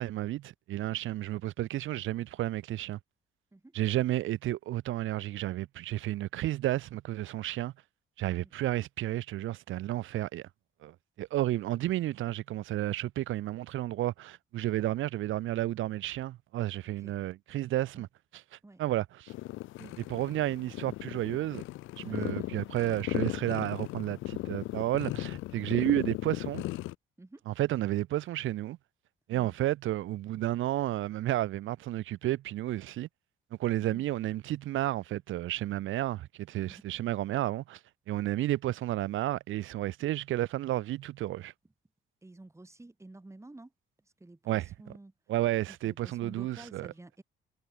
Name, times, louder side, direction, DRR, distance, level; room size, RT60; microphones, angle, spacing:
voice 1, 0.0-3.0 3.7-7.7 8.2-10.5 10.8-18.1 18.8-19.3 20.1-21.6 22.0-26.6 27.5-28.8 29.3-33.1 33.6-37.8 38.1-41.5 44.5-44.6 45.3-46.9, right 14 dB, 80° right, 1.2 m, -32 dB
sound 1, 19.3-27.0, left 18 dB, 90° left, 0.6 m, -37 dB
voice 2, 22.0-22.6 27.2-27.4 29.3-29.5 33.8-34.0 36.7-36.8 42.2-43.7 44.0-45.1 45.7-47.2, right 2 dB, 15° right, 7.7 m, -51 dB
cardioid pair, 90°, 20 cm